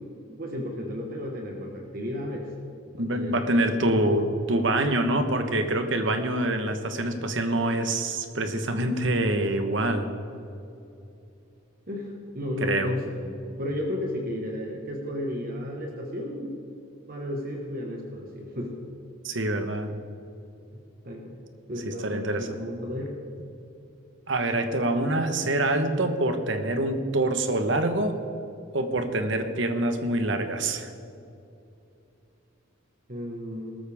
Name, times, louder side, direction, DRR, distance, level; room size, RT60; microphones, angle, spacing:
voice 1, 0.4-2.5 3.0-4.0 11.9-16.5 17.1-18.8 21.0-21.2 21.7-23.1 33.1-33.8, left 1 dB, 45° right, 1 dB, 1.4 m, -33 dB
voice 2, 3.0-10.1 12.6-12.9 19.2-19.9 21.8-22.5 24.3-28.2 28.7-30.9, right 1 dB, 60° right, 7 dB, 1.2 m, -25 dB
19.5 x 13.5 x 3.6 m, 2.7 s
head